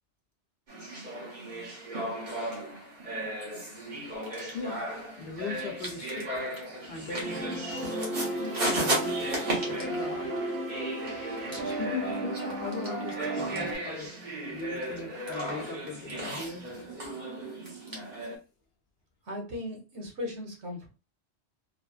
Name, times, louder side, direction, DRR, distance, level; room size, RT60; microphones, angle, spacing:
sound 1, 0.7-18.4, right 1 dB, 45° right, 1.2 m, -36 dB
sound 2, 4.2-4.8 5.6-7.3 7.5-8.9 9.7-10.5 11.0-12.1 12.4-14.1 14.6-15.5 15.8-17.1 17.4-18.3, right 1 dB, 20° right, 0.8 m, -48 dB
voice 1, 5.2-6.3 6.9-7.6 8.8-9.3 9.6-14.1 14.5-16.9, left 3 dB, 65° left, 3 dB, 0.9 m, -39 dB
sound 3, 7.2-13.7, right 1 dB, 65° right, 0.9 m, -34 dB
voice 2, 19.3-20.9, left 1 dB, 85° right, 1 dB, 1.3 m, -37 dB
3.2 x 2.1 x 2.3 m, 0.32 s
omnidirectional pair, 1.1 m